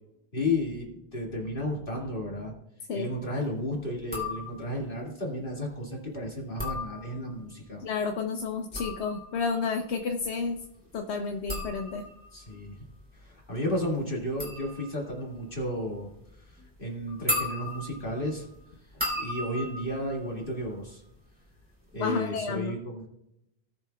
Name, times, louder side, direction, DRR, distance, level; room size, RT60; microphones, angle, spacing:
voice 1, 0.3-2.5 2.9-7.8 12.3-12.9 13.1-16.1 16.4-18.5 18.9-21.0 21.9-23.1, left 1 dB, 55° left, -2 dB, 2.2 m, -33 dB
sound 1, 4.0-4.9 6.4-7.5 8.5-21.2 21.5-22.0, left 1 dB, 10° right, 2.9 m, -37 dB
voice 2, 7.8-10.6 10.9-12.0 22.0-22.8, left 5 dB, 85° left, 4 dB, 1.0 m, -31 dB
18.5 x 6.8 x 2.3 m, 0.83 s
omnidirectional pair, 1.1 m